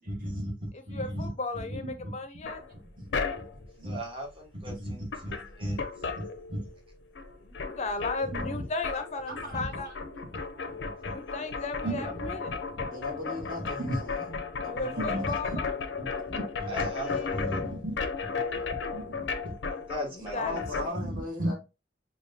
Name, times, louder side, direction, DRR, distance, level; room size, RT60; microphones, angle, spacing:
voice 1, 0.1-1.3 1.5-2.1 3.0-3.4 3.8-5.8 6.1-6.2 6.5-6.6 8.3-8.6 9.3-9.4 10.8-11.1 11.8-12.4 12.8-12.9 13.4-14.4 14.9-15.6 15.9-17.9 18.9-19.5 19.9-20.4 20.8-21.5, right 1 dB, 30° right, 1.2 m, -36 dB
voice 2, 0.7-2.6 7.4-9.9 11.0-12.5 14.7-15.7 16.7-17.3 20.1-20.6, left 3 dB, 40° left, 0.5 m, -35 dB
sound 1, 2.4-3.7 4.7-4.8 5.1-6.9 7.1-20.9, left 5 dB, 85° left, 0.5 m, -35 dB
voice 3, 9.2-9.9 12.9-14.3 14.6-15.5 20.3-21.6, left 2 dB, 55° right, 1.7 m, -39 dB
5.7 x 2.2 x 2.6 m
head